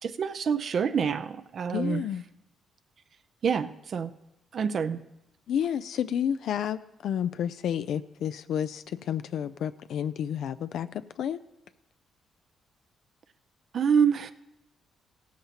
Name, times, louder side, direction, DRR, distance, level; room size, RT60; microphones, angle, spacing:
voice 1, 0.0-2.0 3.4-4.1 4.5-5.0 13.7-14.3, right 7 dB, 55° right, 10 dB, 0.5 m, -26 dB
voice 2, 1.7-2.2 5.5-11.4, left 9 dB, 70° left, 12 dB, 0.4 m, -30 dB
16.5 x 13.5 x 2.9 m, 0.91 s
cardioid pair, 90°, 0 cm